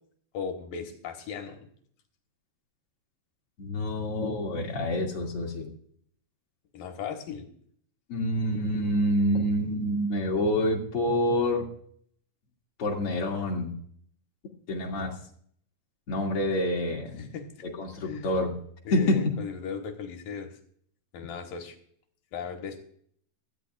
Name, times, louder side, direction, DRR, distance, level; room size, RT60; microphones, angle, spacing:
voice 1, 0.3-1.7 6.7-7.5 17.2-17.6 18.0-18.3 18.8-20.6 21.1-21.8 22.3-22.8, left 6 dB, 75° left, 4 dB, 3.0 m, -37 dB
voice 2, 3.6-5.7 8.1-11.6 12.8-13.7 14.7-15.1 16.1-17.3 17.8-18.5 18.9-19.2, left 1 dB, 45° left, 0 dB, 3.0 m, -27 dB
17.0 x 13.0 x 2.4 m, 0.63 s
omnidirectional pair, 4.1 m